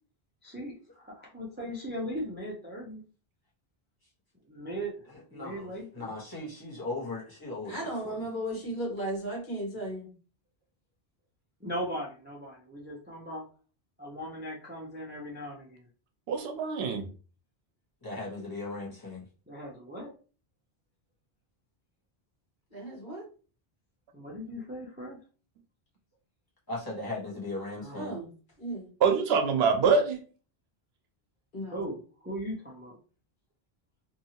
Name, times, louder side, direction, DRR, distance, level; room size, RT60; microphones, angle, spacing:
voice 1, 0.4-3.0 4.5-5.0 5.3-6.1 11.6-13.4 14.0-15.8 19.5-20.1 24.1-25.2 27.8-28.1 31.7-32.9, equal, 10° right, 0.6 m, -38 dB
voice 2, 5.1-8.2 18.0-19.2 26.7-28.1, left 2 dB, 20° left, 1.1 m, -38 dB
voice 3, 7.7-10.1 22.7-23.2 27.9-28.3 28.6-28.9 31.5-31.9, right 1 dB, 55° left, 1.4 m, -35 dB
voice 4, 16.3-17.1 29.0-30.2, right 5 dB, 80° right, 0.8 m, -24 dB
2.7 x 2.6 x 2.8 m
omnidirectional pair, 1.0 m